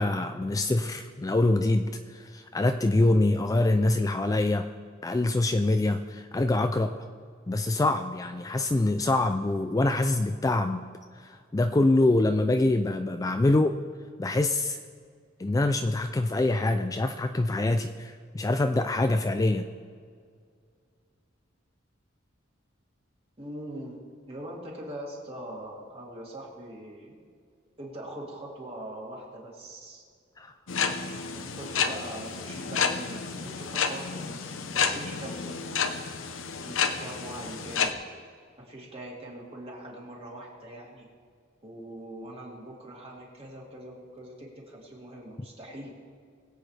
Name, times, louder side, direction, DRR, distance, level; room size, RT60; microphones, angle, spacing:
voice 1, 0.0-4.7 5.0-7.0 7.5-10.8 11.2-13.8 14.2-14.8 15.4-19.7 30.4-30.5, left 2 dB, 20° left, 7 dB, 0.3 m, -25 dB
voice 2, 23.4-27.1 27.8-30.0 31.3-35.8 36.6-38.0 38.6-41.1 41.6-45.9, right 1 dB, 30° right, -3 dB, 2.7 m, -42 dB
sound 1, 30.7-37.9, left 6 dB, 90° left, 0.8 m, -30 dB
21.5 x 8.3 x 3.3 m, 2.1 s
head